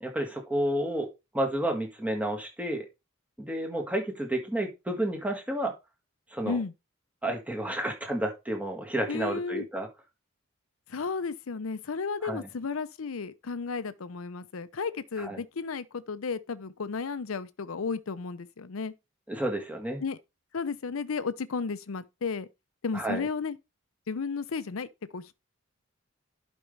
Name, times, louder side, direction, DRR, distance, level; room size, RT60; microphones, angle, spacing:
voice 1, 0.0-1.1 1.3-2.9 3.4-5.7 6.3-6.6 7.2-9.9 12.2-12.5 15.2-15.4 19.3-20.0 22.9-23.3, right 1 dB, 5° right, 1.7 m, -31 dB
voice 2, 9.1-9.6 10.9-18.9 20.0-20.2 20.5-22.5 22.8-23.6 24.1-25.3, left 5 dB, 80° left, 0.6 m, -33 dB
11.0 x 5.3 x 3.3 m
head